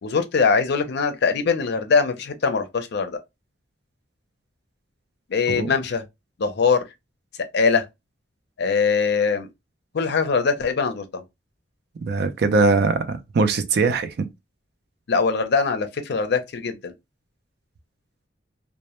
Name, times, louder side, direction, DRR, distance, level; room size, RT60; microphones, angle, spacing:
voice 1, 0.0-3.2 5.3-6.0 6.4-6.8 7.5-7.8 8.6-9.5 9.9-11.2 15.1-16.9, left 5 dB, 65° left, 0.5 m, -22 dB
voice 2, 12.0-14.3, right 4 dB, 60° right, 0.4 m, -21 dB
2.1 x 2.0 x 2.9 m
head